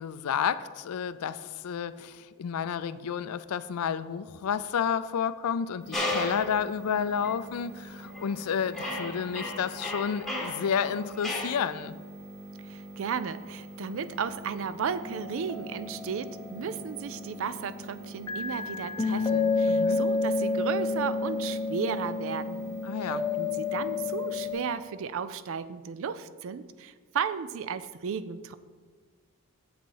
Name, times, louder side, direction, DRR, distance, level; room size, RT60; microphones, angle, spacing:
voice 1, 0.0-12.0 19.7-20.0 22.8-23.3, left 7 dB, 80° left, 14 dB, 0.4 m, -31 dB
sound 1, 5.8-24.6, right 1 dB, 15° right, 1.2 m, -45 dB
sound 2, 5.9-6.5 7.2-7.4 8.0-8.4 8.7-11.6, left 1 dB, ahead, 1.5 m, -34 dB
voice 2, 12.6-22.7 23.0-28.5, right 6 dB, 65° right, 14 dB, 0.4 m, -34 dB
sound 3, 15.0-17.8 18.3-24.5, left 4 dB, 20° left, 0.7 m, -30 dB
7.5 x 6.8 x 4.7 m, 1.5 s
head